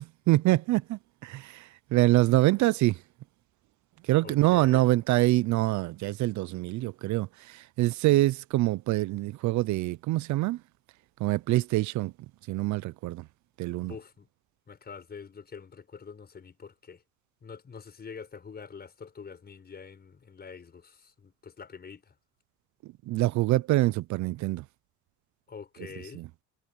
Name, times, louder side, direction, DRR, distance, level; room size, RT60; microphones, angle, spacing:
voice 1, 0.0-3.0 4.1-10.6 11.2-12.1 12.5-13.2 13.6-13.9 23.1-24.6 26.2-26.3, right 17 dB, 65° right, 0.5 m, -25 dB
voice 2, 4.2-4.9 13.8-14.3 14.7-17.0 17.4-22.1 25.5-26.2, left 6 dB, 30° left, 5.4 m, -45 dB
cardioid pair, 120°, 31 cm